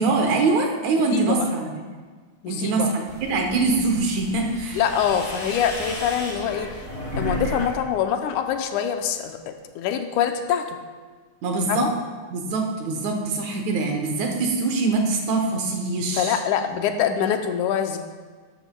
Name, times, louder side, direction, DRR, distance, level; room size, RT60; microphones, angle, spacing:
voice 1, 0.0-1.7 2.5-4.8 11.4-11.9 12.3-16.4, right 3 dB, 70° right, 2 dB, 2.4 m, -23 dB
voice 2, 1.1-1.5 2.4-2.9 4.7-6.8 7.2-10.8 11.7-11.9 16.1-18.0, left 8 dB, 85° left, 6 dB, 2.1 m, -24 dB
sound 1, 3.1-7.7 8.0-8.7, equal, 20° right, 3.0 m, -33 dB
12.0 x 11.5 x 2.3 m, 1.5 s
omnidirectional pair, 3.4 m